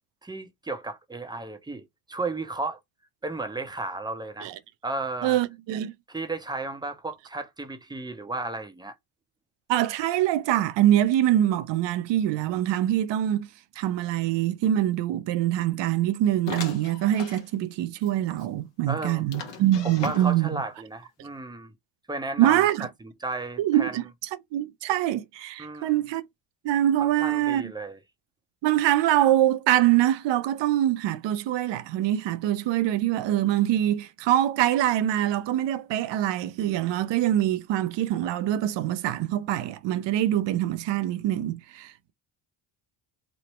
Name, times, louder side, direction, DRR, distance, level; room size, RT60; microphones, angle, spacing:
voice 1, 0.2-2.8 3.2-4.5 4.8-5.4 6.1-8.9 18.9-19.2 19.8-21.7 22.1-24.0 25.6-25.9 27.0-28.0, right 2 dB, 10° right, 0.6 m, -34 dB
voice 2, 5.2-5.9 9.7-13.5 13.8-20.5 22.4-22.9 23.6-24.0 24.5-26.2 26.6-27.7 28.6-42.1, right 12 dB, 60° right, 0.6 m, -24 dB
sound 1, 16.5-17.5 18.0-18.1 18.4-18.5 19.3-20.6, left 5 dB, 60° left, 1.0 m, -37 dB
3.1 x 2.0 x 2.9 m
supercardioid pair, 80°, 49 cm